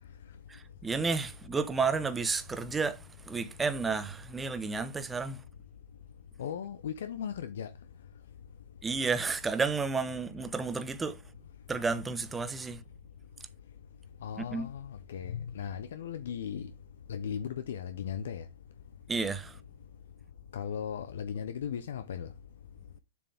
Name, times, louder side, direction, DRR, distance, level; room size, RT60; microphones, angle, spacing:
voice 1, 0.5-5.4 8.8-11.2 11.7-12.8 14.4-14.7 19.1-19.6, right 4 dB, 10° right, 0.8 m, -31 dB
voice 2, 6.4-7.7 14.2-16.7 17.1-18.4 20.5-22.3, left 8 dB, 75° left, 0.7 m, -37 dB
7.4 x 6.1 x 3.5 m
hypercardioid pair, 145°, 0 cm